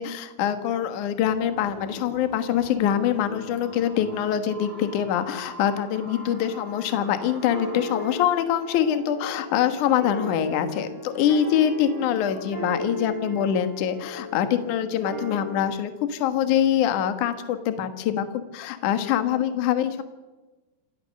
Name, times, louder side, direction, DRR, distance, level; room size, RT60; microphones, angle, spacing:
voice 1, 0.0-18.3 18.5-20.0, left 9 dB, 60° left, 9 dB, 2.3 m, -24 dB
sound 1, 1.2-8.1, right 1 dB, 25° right, 3.6 m, -43 dB
sound 2, 6.1-15.6, left 1 dB, 10° left, 6.3 m, -36 dB
27.0 x 16.0 x 6.6 m, 1.2 s
omnidirectional pair, 5.1 m